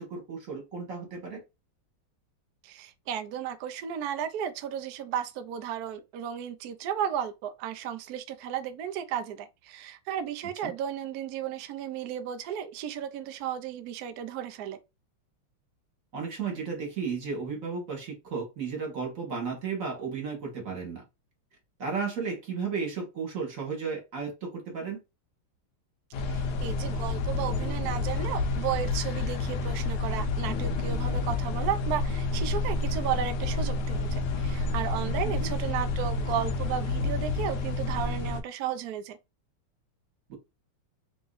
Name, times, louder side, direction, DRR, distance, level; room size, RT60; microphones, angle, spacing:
voice 1, 0.0-1.4 10.6-10.7 16.1-21.0 21.8-25.0 35.3-35.5 40.3-40.4, right 5 dB, 40° right, 1.7 m, -34 dB
voice 2, 2.6-14.8 26.2-39.2, right 9 dB, 85° right, 0.8 m, -34 dB
sound 1, 26.1-38.4, left 3 dB, 70° left, 1.0 m, -29 dB
3.5 x 3.0 x 3.9 m
omnidirectional pair, 2.4 m